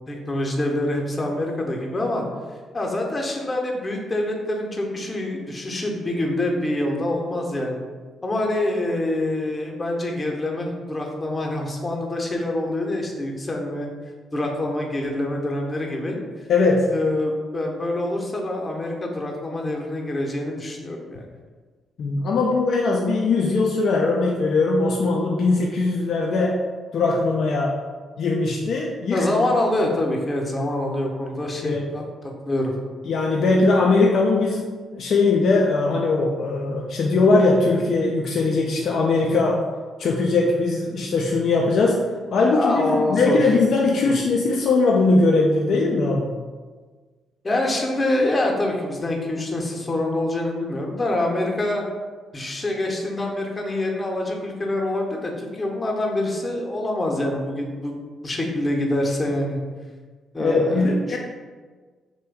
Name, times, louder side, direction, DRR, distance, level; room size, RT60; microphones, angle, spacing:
voice 1, 0.1-2.3 2.7-7.8 8.2-13.9 14.3-16.2 16.9-21.2 29.1-32.0 32.4-32.7 42.5-43.4 44.0-44.1 47.4-51.8 52.3-58.0 58.2-59.6 60.3-61.2, left 1 dB, 30° left, 1 dB, 0.7 m, -25 dB
voice 2, 16.5-16.9 22.0-26.6 26.9-27.8 28.2-29.3 31.6-31.9 33.1-39.6 40.0-42.0 42.3-46.3 60.4-61.2, left 3 dB, 60° left, -1 dB, 0.3 m, -20 dB
3.1 x 2.2 x 3.5 m, 1.4 s
hypercardioid pair, 45°, 0 cm